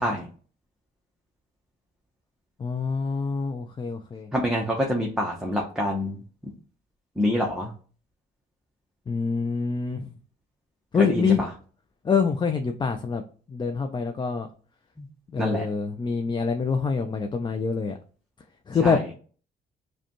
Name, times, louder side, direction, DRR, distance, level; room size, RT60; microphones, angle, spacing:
voice 1, 2.6-4.3 9.1-10.1 10.9-11.4 12.0-13.2 13.5-14.5 15.3-18.0 18.7-19.0, left 5 dB, 25° left, 6 dB, 0.4 m, -25 dB
voice 2, 4.3-6.2 7.2-7.7 11.0-11.5 15.0-15.1 15.4-15.7 18.8-19.0, equal, 5° right, 0 dB, 0.7 m, -26 dB
4.9 x 2.3 x 2.9 m, 0.41 s
cardioid pair, 90°, 20 cm